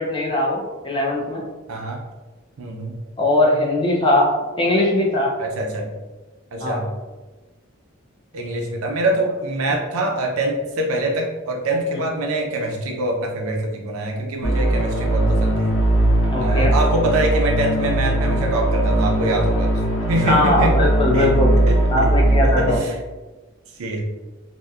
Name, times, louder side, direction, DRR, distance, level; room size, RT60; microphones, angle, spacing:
voice 1, 0.0-1.4 3.2-4.3 4.6-5.3 6.6-6.8 11.9-12.0 16.3-16.7 20.3-21.5 21.9-22.8, left 1 dB, 20° left, -2 dB, 0.4 m, -20 dB
voice 2, 1.7-2.0 2.6-3.0 5.4-5.9 6.5-6.9 8.3-15.8 16.4-19.8 20.1-20.8 21.1-23.0 23.8-24.0, right 1 dB, 85° right, 1 dB, 0.5 m, -24 dB
sound 1, 14.4-22.8, right 1 dB, 70° left, 0.6 m, -19 dB
2.8 x 2.1 x 2.3 m, 1.2 s
head